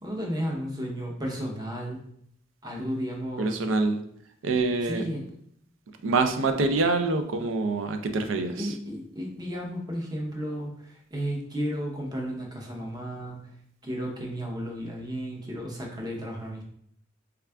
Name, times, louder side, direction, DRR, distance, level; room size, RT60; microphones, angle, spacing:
voice 1, 0.0-2.0 2.6-3.6 4.8-5.2 8.6-13.4 13.8-16.6, equal, 20° right, -1 dB, 0.7 m, -33 dB
voice 2, 3.4-4.0 4.4-5.0 6.0-8.7, right 3 dB, 85° right, 6 dB, 0.4 m, -25 dB
3.5 x 2.3 x 3.3 m, 0.68 s
head